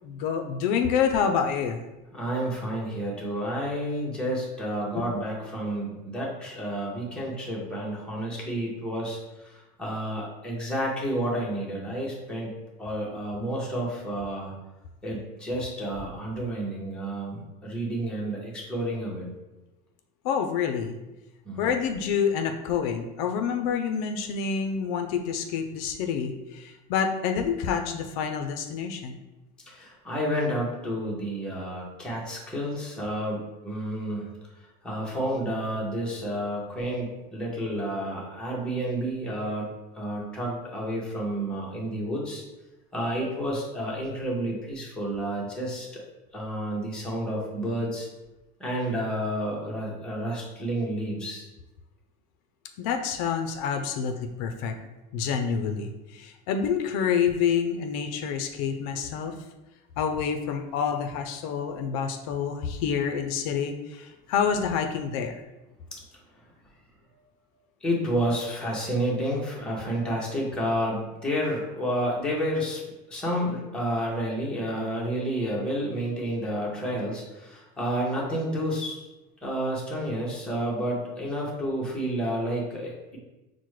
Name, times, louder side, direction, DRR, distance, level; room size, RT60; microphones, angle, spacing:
voice 1, 0.0-1.8 20.2-20.9 21.6-29.2 52.8-54.8 55.1-59.3 60.0-65.4, left 7 dB, 65° left, 5 dB, 0.4 m, -27 dB
voice 2, 2.1-14.5 15.0-19.3 21.4-21.6 29.7-34.3 34.8-39.7 39.9-42.4 42.9-46.0 46.3-48.1 48.6-51.4 67.8-72.8 73.1-79.0 79.4-83.2, equal, 5° left, -5 dB, 0.7 m, -30 dB
5.8 x 2.1 x 3.1 m, 1.0 s
cardioid pair, 170°, 20 cm